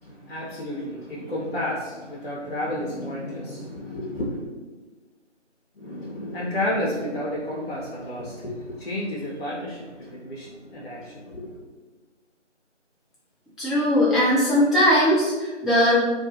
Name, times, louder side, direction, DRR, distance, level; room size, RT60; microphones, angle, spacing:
voice 1, 0.0-4.5 5.8-11.7, left 1 dB, 60° left, -5 dB, 0.5 m, -31 dB
voice 2, 13.6-15.9, equal, ahead, -10 dB, 0.4 m, -19 dB
2.4 x 2.1 x 2.7 m, 1.3 s
figure-of-eight pair, 175°, 36 cm